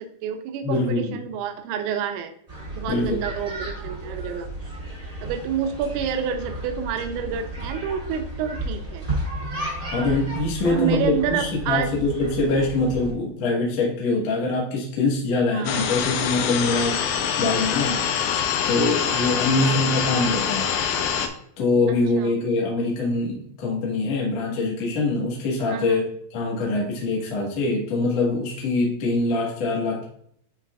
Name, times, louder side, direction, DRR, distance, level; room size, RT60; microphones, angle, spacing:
voice 1, 0.0-2.3 2.7-4.5 5.2-9.1 10.7-11.9 15.5-16.0 19.5-19.8 22.2-22.3 25.7-26.1, right 7 dB, 85° right, 6 dB, 2.9 m, -29 dB
voice 2, 0.6-1.2 2.9-3.2 9.9-17.0 17.4-18.0 18.7-20.7 21.6-26.0 26.3-30.0, left 2 dB, 70° left, -3 dB, 1.5 m, -24 dB
sound 1, 2.5-13.1, right 1 dB, 20° right, 1.3 m, -33 dB
sound 2, 15.7-21.3, left 8 dB, 90° left, 2.4 m, -25 dB
9.9 x 4.1 x 2.4 m, 0.66 s
omnidirectional pair, 5.5 m